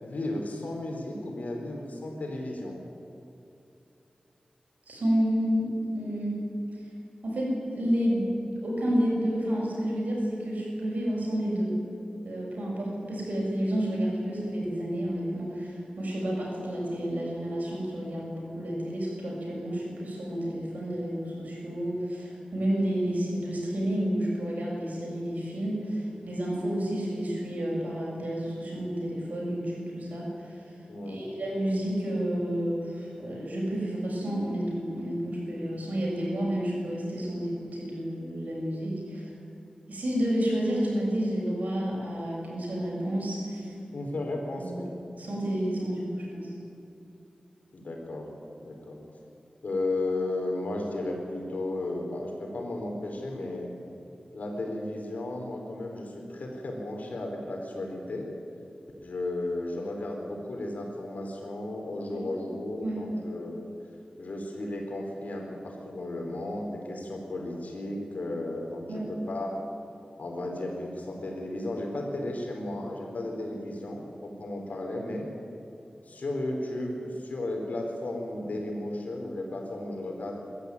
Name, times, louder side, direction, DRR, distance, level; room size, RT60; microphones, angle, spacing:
voice 1, 0.0-2.8 30.9-31.2 43.9-44.9 47.7-48.3 48.6-49.0 49.6-53.7 54.3-58.3 59.0-63.7 64.2-69.0 69.3-69.5 70.2-75.3 76.0-80.4, left 2 dB, 90° left, 1 dB, 4.3 m, -34 dB
voice 2, 4.9-6.3 6.7-6.8 7.2-11.7 12.2-30.6 31.0-39.3 39.9-43.7 44.6-44.8 45.2-46.5 62.4-62.5 62.8-63.0 68.9-69.0, equal, 85° right, -3 dB, 7.4 m, -30 dB
23.5 x 13.5 x 9.9 m, 2.6 s
wide cardioid pair, 75°, 3 cm